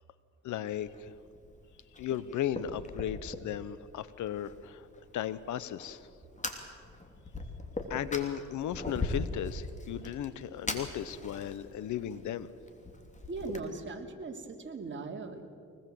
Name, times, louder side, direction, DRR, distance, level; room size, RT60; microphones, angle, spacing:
voice 1, 0.4-1.1 2.0-4.8 5.1-6.0 7.9-12.5, left 10 dB, 75° left, 16 dB, 1.1 m, -36 dB
Fire, 0.7-13.6, left 2 dB, 25° left, 3.1 m, -41 dB
voice 2, 13.3-15.4, right 3 dB, 40° right, 3 dB, 3.2 m, -39 dB
24.0 x 20.0 x 7.8 m, 2.4 s
cardioid pair, 90°, 30 cm